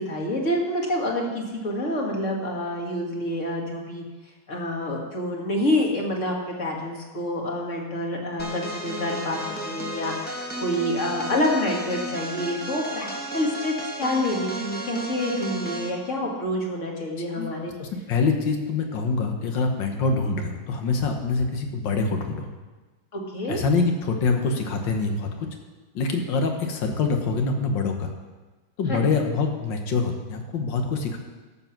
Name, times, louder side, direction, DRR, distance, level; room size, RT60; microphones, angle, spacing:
voice 1, 0.0-4.0 4.5-17.7 23.1-23.6 28.9-29.1, left 1 dB, 40° left, 0 dB, 2.1 m, -27 dB
sound 1, 8.4-16.0, right 1 dB, 5° left, 0.9 m, -33 dB
voice 2, 17.8-22.5 23.5-25.5 26.0-28.1 28.8-31.2, left 4 dB, 85° left, 4 dB, 1.9 m, -25 dB
13.0 x 7.2 x 5.9 m, 1.3 s
omnidirectional pair, 2.0 m